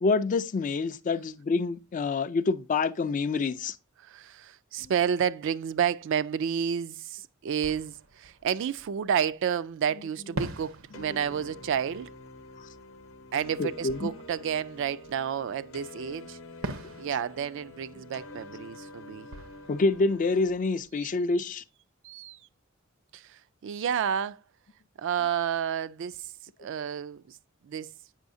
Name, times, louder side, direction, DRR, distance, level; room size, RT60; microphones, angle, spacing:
voice 1, 0.0-3.7 13.6-14.1 19.7-21.6, left 3 dB, 40° left, 0.4 m, -27 dB
voice 2, 4.0-12.1 13.3-16.4 17.0-19.3 21.0-21.1 22.0-22.4 23.1-24.4 25.0-26.3 26.6-27.4 27.6-27.9, right 8 dB, 60° right, 0.3 m, -30 dB
Fireworks, 7.6-9.6 10.4-15.7 16.6-21.4, right 2 dB, 80° right, 0.8 m, -44 dB
sound 1, 10.9-20.5, left 2 dB, 70° left, 0.8 m, -47 dB
8.1 x 5.5 x 2.6 m
head